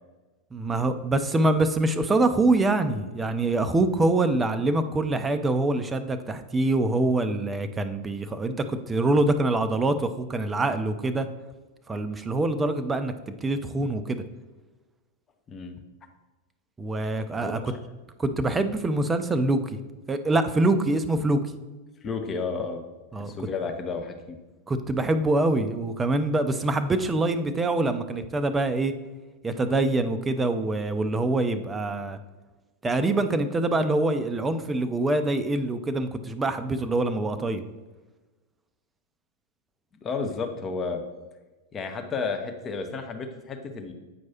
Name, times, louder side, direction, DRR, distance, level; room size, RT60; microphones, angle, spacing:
voice 1, 0.5-11.3 11.9-14.2 16.8-17.7 18.2-19.8 20.1-21.4 23.1-23.3 24.7-28.9 29.4-32.2 32.8-37.6, right 2 dB, 15° right, 9 dB, 0.4 m, -25 dB
voice 2, 22.0-22.8 23.2-24.4 40.0-41.0 41.7-43.9, left 4 dB, 25° left, 5 dB, 0.7 m, -32 dB
8.4 x 4.6 x 2.8 m, 1.2 s
figure-of-eight pair, 90°, 0 cm